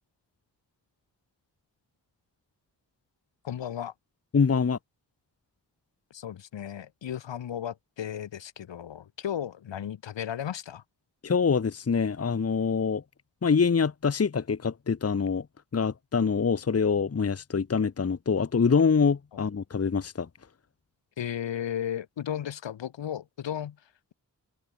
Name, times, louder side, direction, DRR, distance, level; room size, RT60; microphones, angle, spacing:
voice 1, 3.4-3.9 6.1-10.8 21.2-23.8, left 10 dB, 85° left, 2.4 m, -34 dB
voice 2, 4.3-4.8 11.2-13.0 13.4-15.5 15.7-20.3, left 5 dB, 35° left, 1.1 m, -25 dB
open air
cardioid pair, 50°, 43 cm